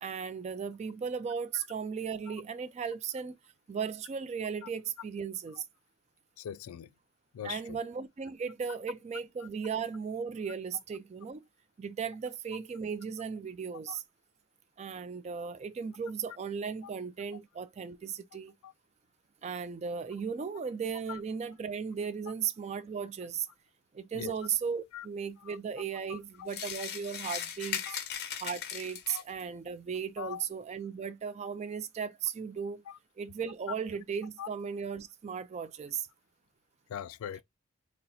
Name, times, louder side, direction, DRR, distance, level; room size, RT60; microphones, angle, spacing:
voice 1, 0.0-3.4 3.7-5.6 7.4-11.4 11.8-14.0 14.8-18.5 19.4-23.5 23.9-28.0 28.4-32.8 33.2-36.1, right 6 dB, 30° right, 0.3 m, -36 dB
voice 2, 6.4-6.9 7.3-7.8 13.9-14.0 18.6-18.7 21.1-21.2 24.1-24.3 24.9-25.1 25.5-25.6 26.1-26.5 27.3-27.4 27.9-28.0 29.1-29.2 30.2-30.4 32.9-33.0 34.4-34.5 36.9-37.4, left 9 dB, 90° left, 0.3 m, -41 dB
sound 1, 26.5-29.4, left 8 dB, 50° left, 0.8 m, -38 dB
4.0 x 2.0 x 4.1 m
head